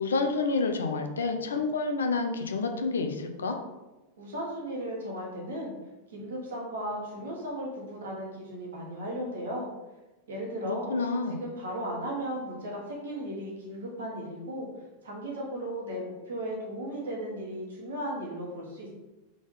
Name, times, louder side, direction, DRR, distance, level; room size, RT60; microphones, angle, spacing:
voice 1, 0.0-3.6 10.6-11.4, left 4 dB, 70° left, 5 dB, 0.5 m, -29 dB
voice 2, 4.2-5.8 6.1-9.7 10.3-10.9 11.4-14.7 15.0-18.9, right 1 dB, 65° right, -2 dB, 1.3 m, -36 dB
3.8 x 3.7 x 3.3 m, 1.1 s
figure-of-eight pair, 90°, 0 cm